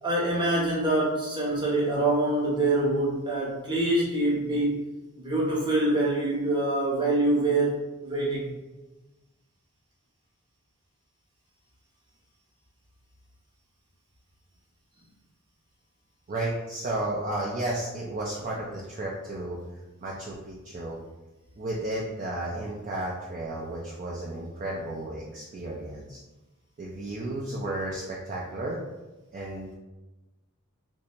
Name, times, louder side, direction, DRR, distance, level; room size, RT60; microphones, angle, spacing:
voice 1, 0.0-4.8 5.2-8.4, right 2 dB, 20° right, -5 dB, 0.8 m, -25 dB
voice 2, 16.3-19.6 20.0-21.0 21.6-26.2 26.8-28.8 29.3-29.7, right 1 dB, 40° right, -4 dB, 0.4 m, -33 dB
3.2 x 2.6 x 2.9 m, 1.1 s
head